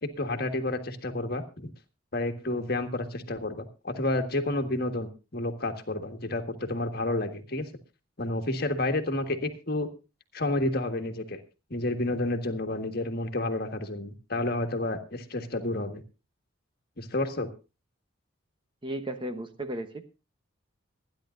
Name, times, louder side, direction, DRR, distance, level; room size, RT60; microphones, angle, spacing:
voice 1, 0.0-1.7 2.1-7.6 8.2-9.9 10.3-11.4 11.7-16.0 17.0-17.5, left 2 dB, 45° left, 6 dB, 1.6 m, -30 dB
voice 2, 18.8-20.1, right 1 dB, 25° right, 8 dB, 0.9 m, -35 dB
26.0 x 10.5 x 2.5 m, 0.30 s
head